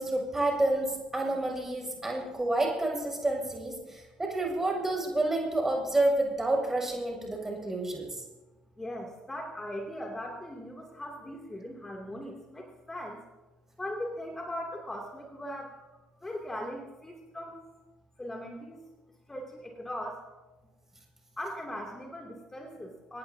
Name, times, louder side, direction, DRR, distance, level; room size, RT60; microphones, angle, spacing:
voice 1, 0.0-8.2, right 2 dB, 15° right, 0 dB, 6.6 m, -29 dB
voice 2, 8.8-13.2 13.8-15.9 16.1-17.6 18.2-18.8 19.3-20.3 21.4-23.2, left 1 dB, 15° left, 0 dB, 2.7 m, -39 dB
25.0 x 19.0 x 2.8 m, 1.2 s
figure-of-eight pair, 55°, 3 cm